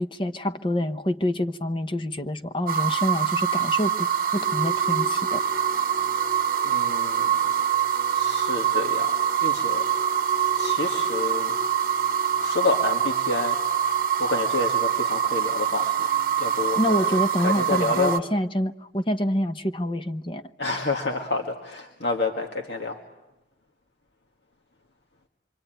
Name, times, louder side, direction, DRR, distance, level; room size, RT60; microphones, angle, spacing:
voice 1, 0.0-5.4 16.8-20.4, left 1 dB, 30° left, 9 dB, 0.9 m, -27 dB
sound 1, 2.7-18.2, right 8 dB, 50° right, 0.9 m, -24 dB
sound 2, 4.3-17.0, left 1 dB, 10° right, 1.6 m, -41 dB
voice 2, 6.6-7.4 8.1-9.1 9.4-10.2 10.5-11.5 12.4-13.6 14.2-16.1 16.4-18.2 20.6-23.0, left 3 dB, 70° left, 1 dB, 1.9 m, -29 dB
26.5 x 24.0 x 9.1 m, 1.0 s
head